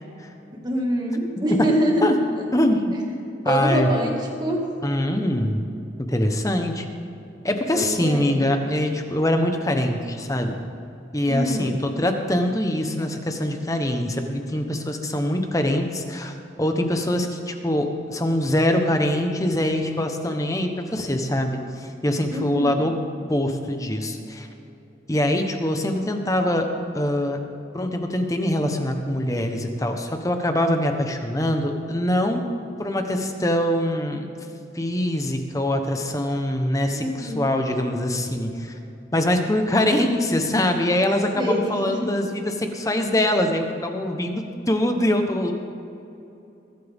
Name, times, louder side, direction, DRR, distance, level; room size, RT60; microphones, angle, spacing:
voice 1, 0.6-2.5 2.9-3.0 3.5-4.1 4.4-4.7 7.7-8.4 11.3-11.8 22.3-22.8 36.9-37.4 41.3-42.1, equal, 25° right, 0 dB, 1.9 m, -25 dB
voice 2, 2.5-3.0 3.4-3.9 4.8-5.6 6.0-6.9 7.4-10.6 11.1-22.9 23.3-24.5 25.1-26.7 26.9-27.4 27.7-32.4 32.8-34.3 34.7-38.7 39.1-45.5, left 1 dB, 20° left, 5 dB, 1.0 m, -23 dB
22.0 x 12.0 x 3.6 m, 2.8 s
head